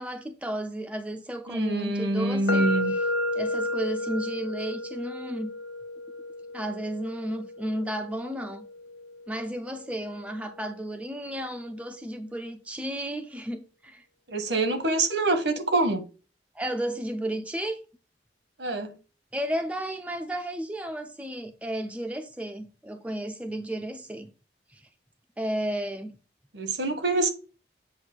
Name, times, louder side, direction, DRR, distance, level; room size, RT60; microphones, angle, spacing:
voice 1, 0.0-2.7 3.3-5.5 6.5-8.7 9.3-14.0 16.5-17.8 19.3-24.3 24.7-24.8 25.4-26.1, right 1 dB, 5° right, 0.6 m, -33 dB
voice 2, 1.5-2.9 14.3-16.1 18.6-19.0 26.5-27.3, right 2 dB, 80° right, 1.4 m, -25 dB
sound 1, 2.5-10.3, left 2 dB, 75° left, 0.7 m, -33 dB
7.9 x 2.7 x 6.0 m
head